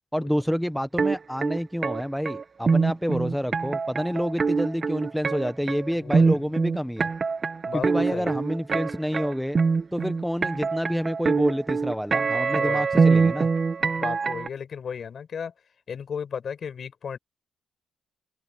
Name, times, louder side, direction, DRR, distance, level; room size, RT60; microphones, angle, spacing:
voice 1, 0.1-7.1 7.7-9.6 9.9-13.5, equal, ahead, 1.2 m, -28 dB
sound 1, 1.0-14.5, right 4 dB, 35° right, 1.6 m, -24 dB
voice 2, 6.0-6.4 7.6-8.4 12.5-12.9 13.8-15.5 15.9-17.2, left 7 dB, 50° left, 6.2 m, -35 dB
open air
cardioid pair, 90°, 0 cm